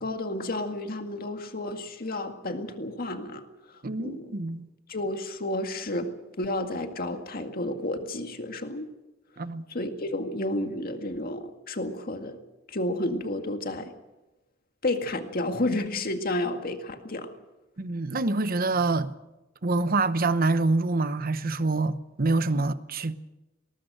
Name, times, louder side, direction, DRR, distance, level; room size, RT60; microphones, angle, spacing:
voice 1, 0.0-3.4 4.0-4.3 4.9-6.1 6.4-8.9 9.7-12.4 12.7-13.9 14.8-17.3, left 1 dB, 50° left, 2.0 m, -31 dB
voice 2, 3.8-4.7 9.4-9.6 17.8-19.1 19.6-23.2, right 3 dB, 50° right, 0.9 m, -26 dB
19.5 x 19.5 x 7.8 m
head